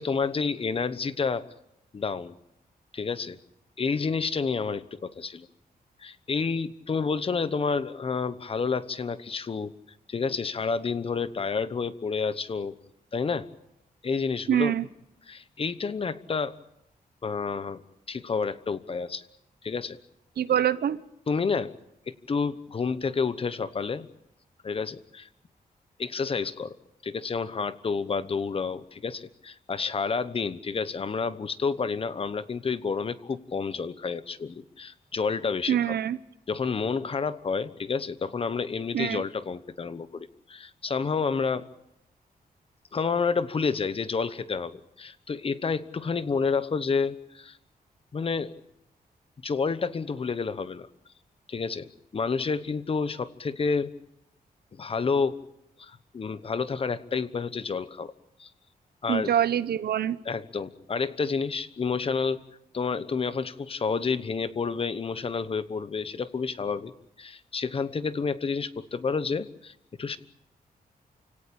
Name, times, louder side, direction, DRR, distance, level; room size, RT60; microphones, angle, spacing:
voice 1, 0.0-1.5 1.9-2.4 2.9-3.4 3.8-5.5 6.0-9.7 10.1-12.8 13.1-13.5 14.0-14.7 15.3-16.5 17.2-17.8 18.1-19.2 19.6-20.0 21.3-21.7 22.1-24.1 24.6-25.3 26.0-26.8 27.0-36.0 36.5-41.7 42.9-47.6 48.1-48.5 49.4-50.9 51.5-53.9 54.8-55.4 55.8-58.1 58.4-58.5 59.0-59.3 60.2-62.4 62.7-66.9 67.2-69.7 70.0-70.2, left 5 dB, 35° left, 14 dB, 1.1 m, -29 dB
voice 2, 14.5-14.9 20.4-21.0 35.7-36.2 38.9-39.2 59.1-60.2, right 10 dB, 90° right, 15 dB, 1.0 m, -25 dB
29.0 x 17.5 x 8.7 m, 0.84 s
wide cardioid pair, 160°, 16 cm